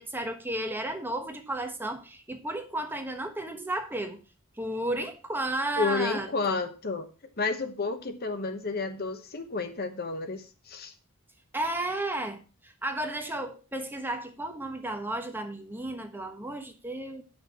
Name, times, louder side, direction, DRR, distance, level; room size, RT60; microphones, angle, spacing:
voice 1, 0.0-4.2 4.6-6.6 11.5-17.2, right 1 dB, 10° right, 1.2 m, -33 dB
voice 2, 5.8-7.1 7.4-10.9, left 4 dB, 45° left, 1.0 m, -31 dB
8.9 x 6.2 x 5.5 m
head